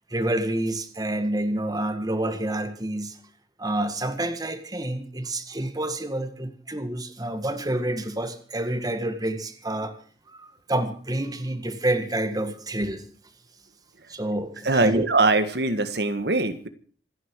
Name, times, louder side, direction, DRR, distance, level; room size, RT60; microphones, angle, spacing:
voice 1, 0.1-3.2 3.6-10.0 10.3-13.1 14.1-15.0, right 1 dB, 20° right, 9 dB, 1.8 m, -28 dB
voice 2, 14.6-16.7, right 3 dB, 65° right, 10 dB, 1.7 m, -22 dB
27.0 x 10.5 x 4.7 m, 0.42 s
head